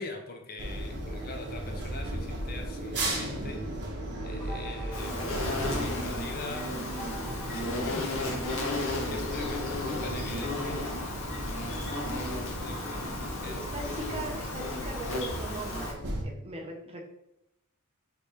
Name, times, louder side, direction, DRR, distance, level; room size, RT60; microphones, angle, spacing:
voice 1, 0.0-3.9 4.2-11.4 12.1-13.1 13.4-13.7, left 3 dB, 45° left, 4 dB, 0.6 m, -43 dB
sound 1, 0.6-16.2, right 1 dB, 55° right, 1.1 m, -36 dB
sound 2, 4.4-6.2 6.9-8.7 9.4-13.7, right 2 dB, 5° left, 1.0 m, -49 dB
Insect, 4.9-15.9, left 2 dB, 65° left, 1.0 m, -34 dB
voice 2, 10.3-10.6 13.4-17.0, right 2 dB, 25° right, 0 dB, 0.8 m, -40 dB
3.4 x 3.3 x 4.2 m, 0.83 s
head